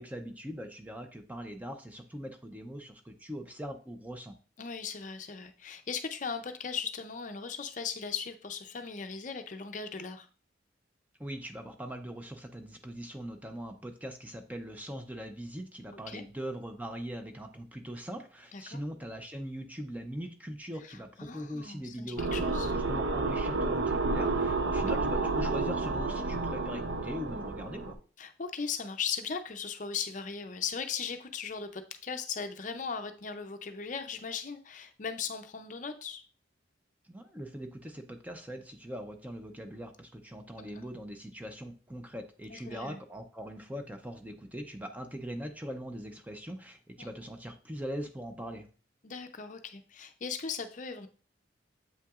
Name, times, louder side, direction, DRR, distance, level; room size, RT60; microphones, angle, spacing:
voice 1, 0.0-4.3 11.2-28.0 37.0-48.7, equal, 10° right, 5 dB, 0.5 m, -41 dB
voice 2, 4.6-10.3 16.1-16.2 18.5-18.8 20.8-22.7 28.2-36.2 40.6-40.9 42.5-43.0 47.0-47.1 49.0-51.1, left 6 dB, 40° left, 7 dB, 0.5 m, -38 dB
sound 1, 22.2-27.9, right 3 dB, 75° right, 0.7 m, -30 dB
7.7 x 5.6 x 2.4 m, 0.39 s
head